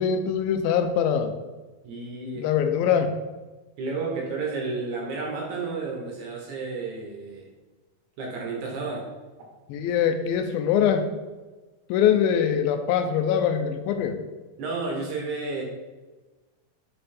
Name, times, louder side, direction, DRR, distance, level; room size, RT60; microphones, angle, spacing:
voice 1, 0.0-1.3 2.4-3.1 9.7-11.1 11.9-14.2, left 8 dB, 85° left, 7 dB, 2.4 m, -23 dB
voice 2, 1.8-2.5 3.8-7.5 8.2-9.1 14.6-15.6, right 3 dB, 70° right, -1 dB, 2.1 m, -31 dB
5.7 x 5.4 x 4.2 m, 1.2 s
omnidirectional pair, 4.2 m